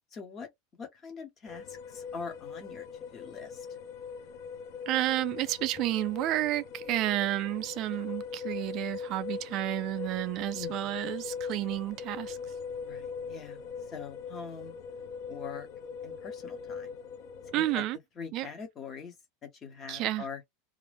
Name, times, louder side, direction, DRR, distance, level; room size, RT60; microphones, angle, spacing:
voice 1, 0.1-2.9 3.1-3.7 10.5-11.1 12.8-13.6 13.9-14.7 15.3-15.7 16.0-17.0 17.5-17.8 18.2-19.1 19.4-20.4, left 5 dB, 20° left, 0.9 m, -43 dB
sound 1, 1.5-17.8, left 6 dB, 40° left, 0.4 m, -41 dB
voice 2, 4.9-12.4 17.5-18.0 18.3-18.5 19.9-20.3, right 15 dB, 35° right, 0.3 m, -31 dB
2.4 x 2.1 x 3.2 m
supercardioid pair, 175°, 0 cm